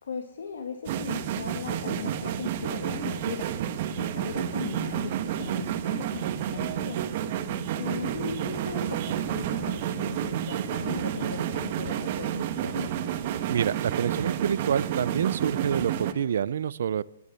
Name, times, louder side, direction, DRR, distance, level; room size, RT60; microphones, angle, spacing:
voice 1, 0.0-3.5 4.0-7.0 7.8-13.0, left 6 dB, 85° left, 6 dB, 1.5 m, -38 dB
sound 1, 0.8-16.1, right 10 dB, 45° right, 1.2 m, -30 dB
voice 2, 13.5-17.0, right 8 dB, 70° right, 20 dB, 0.5 m, -27 dB
20.5 x 9.6 x 6.9 m, 0.82 s
hypercardioid pair, 155°, 0 cm